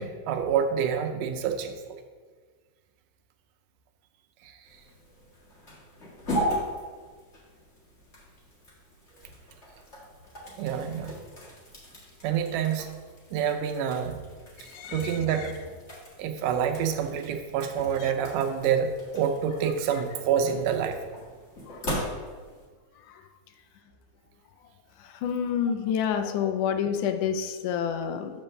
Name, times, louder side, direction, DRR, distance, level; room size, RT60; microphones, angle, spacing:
voice 1, 0.0-2.0 4.4-4.6 10.6-11.2 12.2-12.9 13.3-14.2 14.9-15.5 16.2-21.0, right 8 dB, 85° right, 5 dB, 2.3 m, -27 dB
sound 1, 4.6-22.7, equal, 30° left, 1.3 m, -38 dB
voice 2, 25.2-28.3, left 8 dB, 80° left, 8 dB, 2.1 m, -27 dB
7.2 x 4.3 x 6.6 m, 1.5 s
omnidirectional pair, 3.7 m